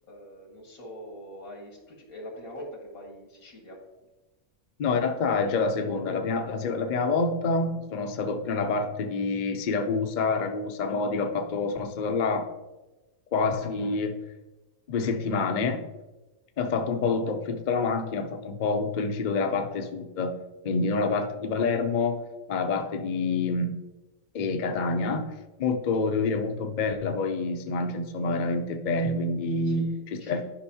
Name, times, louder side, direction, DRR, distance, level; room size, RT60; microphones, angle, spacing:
voice 1, 0.1-3.8 21.0-21.3 29.7-30.4, equal, 70° left, -1 dB, 2.3 m, -44 dB
voice 2, 4.8-12.5 13.3-14.2 14.9-15.9 16.6-20.3 20.6-22.2 22.5-23.8 24.3-30.4, left 4 dB, 50° left, 5 dB, 0.5 m, -27 dB
11.5 x 5.3 x 2.8 m, 1.1 s
omnidirectional pair, 1.5 m